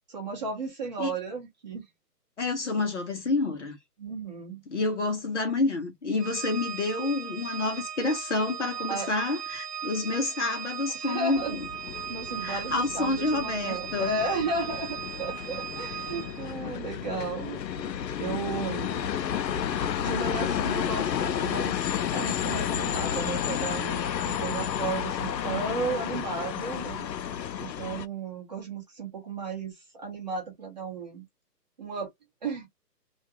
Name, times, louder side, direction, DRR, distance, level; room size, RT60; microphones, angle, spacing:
voice 1, 0.1-1.8 4.0-4.6 8.9-9.1 10.9-11.6 12.1-19.1 20.0-27.1 27.6-31.2 31.8-32.1 32.4-32.7, right 3 dB, 25° right, 0.9 m, -34 dB
voice 2, 2.4-3.8 4.7-11.6 12.4-14.2, left 3 dB, 45° left, 0.7 m, -28 dB
Organ, 6.2-16.6, right 9 dB, 75° right, 0.7 m, -38 dB
sound 1, 11.4-28.1, left 9 dB, 90° left, 0.6 m, -31 dB
2.4 x 2.2 x 2.7 m
hypercardioid pair, 160°, 49 cm